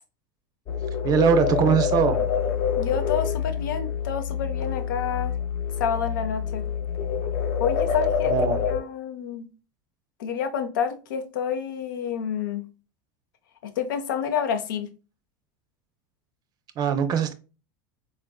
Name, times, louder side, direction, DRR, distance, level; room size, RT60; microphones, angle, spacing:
sound 1, 0.7-8.8, left 7 dB, 55° left, 0.8 m, -26 dB
voice 1, 1.0-2.2 8.3-8.6 16.8-17.3, right 7 dB, 40° right, 0.5 m, -21 dB
voice 2, 2.8-5.4 5.8-6.6 7.6-8.3 8.7-9.5 10.2-12.7 13.6-14.9, left 7 dB, 85° left, 0.5 m, -29 dB
3.8 x 2.5 x 2.3 m
supercardioid pair, 115°, 11 cm